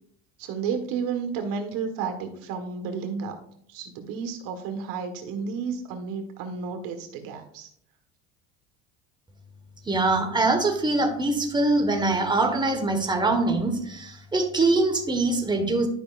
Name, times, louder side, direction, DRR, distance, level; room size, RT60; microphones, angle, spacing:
voice 1, 0.4-3.4 3.7-7.7, right 5 dB, 75° right, 5 dB, 1.5 m, -32 dB
voice 2, 9.8-15.9, right 2 dB, 15° right, 4 dB, 1.4 m, -23 dB
11.5 x 5.5 x 2.5 m, 0.69 s
supercardioid pair, 105°, 34 cm